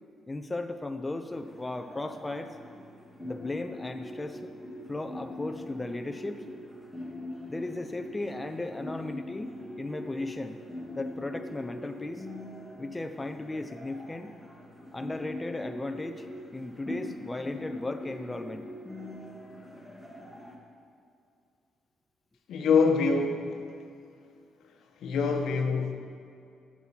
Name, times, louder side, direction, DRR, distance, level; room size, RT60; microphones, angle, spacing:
voice 1, 0.3-2.5 3.2-4.5 4.9-6.5 7.5-10.6 11.0-12.3 12.8-14.4 14.9-16.3 16.5-18.7, left 2 dB, 15° left, 7 dB, 0.5 m, -36 dB
sound 1, 1.3-20.6, left 1 dB, 5° right, 1.5 m, -42 dB
voice 2, 22.5-23.6 25.0-25.9, left 5 dB, 75° left, 4 dB, 1.0 m, -25 dB
8.0 x 6.0 x 7.4 m, 2.4 s
cardioid pair, 90°, 0 cm